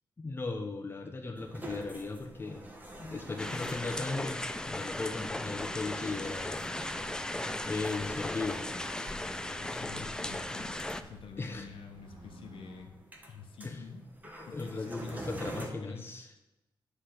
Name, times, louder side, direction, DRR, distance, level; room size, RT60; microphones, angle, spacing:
voice 1, 0.2-2.7 3.0-6.8 7.6-8.7 9.9-10.1 11.4-11.7 13.6-13.9 14.4-16.3, left 3 dB, 25° left, 3 dB, 0.8 m, -37 dB
sound 1, 1.4-15.7, right 1 dB, 20° right, 1.0 m, -49 dB
sound 2, 3.4-11.0, left 1 dB, 10° left, 0.3 m, -37 dB
Accelerating revving vroom, 4.2-12.9, right 1 dB, 85° right, 2.1 m, -52 dB
voice 2, 9.6-12.9 13.3-14.0 14.4-16.1, left 5 dB, 90° left, 4 dB, 0.9 m, -48 dB
9.7 x 3.3 x 5.9 m, 0.97 s
wide cardioid pair, 145°, 9 cm